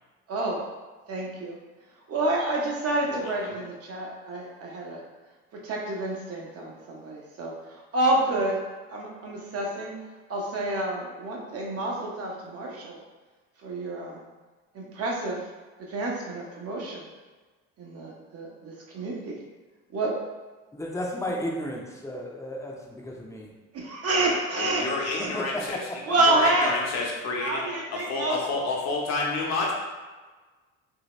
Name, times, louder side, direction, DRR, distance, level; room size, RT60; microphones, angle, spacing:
voice 1, 0.3-0.6 1.1-1.6 2.1-5.0 5.6-8.6 8.9-9.9 10.3-13.0 13.6-14.2 14.7-15.4 15.9-17.0 17.8-19.4 19.9-20.1 23.7-25.3 26.1-26.7 27.4-28.4, right 2 dB, 45° right, -2 dB, 0.9 m, -28 dB
voice 2, 3.0-3.6 24.6-27.6 27.9-29.7, left 3 dB, 55° left, -2 dB, 0.9 m, -30 dB
voice 3, 20.7-23.5 25.2-26.0, left 1 dB, 10° left, -1 dB, 0.6 m, -33 dB
2.8 x 2.7 x 3.1 m, 1.3 s
supercardioid pair, 80°, 32 cm